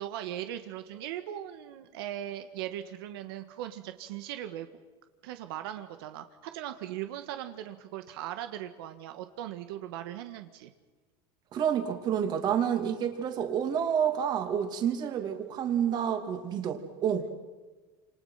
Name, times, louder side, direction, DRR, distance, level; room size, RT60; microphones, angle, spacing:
voice 1, 0.0-4.7 5.2-10.7, right 12 dB, 80° right, 8 dB, 1.8 m, -39 dB
voice 2, 11.5-17.3, right 8 dB, 35° right, 6 dB, 2.8 m, -29 dB
29.5 x 28.0 x 5.9 m, 1.3 s
cardioid pair, 160°, 12 cm